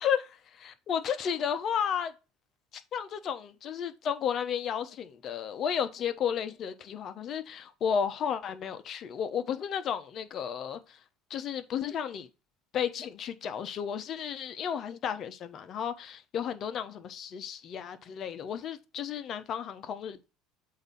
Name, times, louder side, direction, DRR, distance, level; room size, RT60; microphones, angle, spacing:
voice 1, 0.6-2.1 2.9-10.8 11.3-12.3 12.7-20.3, left 8 dB, 50° left, 1.0 m, -33 dB
7.9 x 2.9 x 5.3 m
hypercardioid pair, 80°, 0 cm